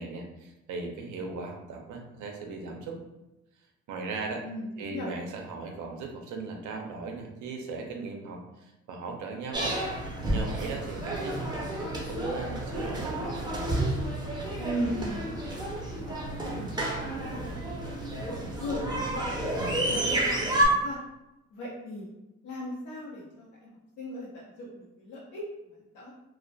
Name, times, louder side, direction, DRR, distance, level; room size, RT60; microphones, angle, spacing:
voice 1, 0.0-3.0 3.9-4.4 4.8-9.8 10.3-13.2, right 4 dB, 75° right, 2 dB, 0.5 m, -38 dB
voice 2, 4.4-5.1 14.6-15.3 15.9-19.3 19.7-21.0 21.5-22.1 22.4-26.1, equal, 85° left, -6 dB, 0.7 m, -38 dB
sound 1, 9.5-20.7, right 1 dB, 15° right, 0.5 m, -31 dB
2.2 x 2.1 x 2.6 m, 0.97 s
cardioid pair, 90°, 30 cm